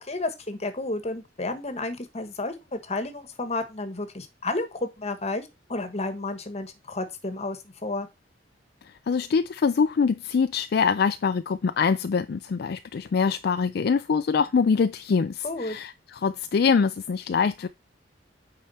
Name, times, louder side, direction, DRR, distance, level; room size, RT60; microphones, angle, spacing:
voice 1, 0.0-8.1 15.4-15.8, left 2 dB, 35° left, 1.4 m, -31 dB
voice 2, 8.9-17.7, left 5 dB, 60° left, 0.4 m, -24 dB
8.7 x 4.9 x 4.2 m
head